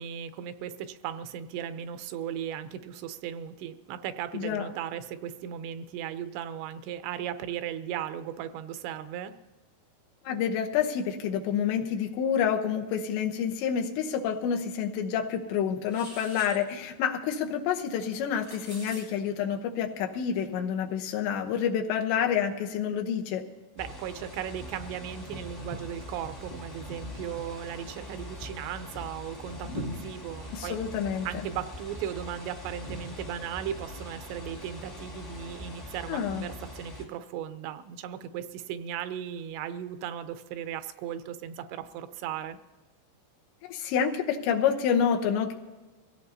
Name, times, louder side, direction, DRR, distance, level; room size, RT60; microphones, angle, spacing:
voice 1, 0.0-9.3 23.8-30.8 31.3-42.6, right 9 dB, 85° right, 10 dB, 2.9 m, -37 dB
voice 2, 4.3-4.7 10.2-23.4 30.5-31.3 36.1-36.5 43.6-45.5, left 8 dB, 85° left, 3 dB, 3.2 m, -28 dB
sound 1, 15.9-16.5 18.1-19.0, right 1 dB, 20° right, 6.5 m, -45 dB
sound 2, 23.8-37.0, left 1 dB, 20° left, 1.7 m, -42 dB
23.5 x 16.5 x 2.8 m, 1.3 s
omnidirectional pair, 4.9 m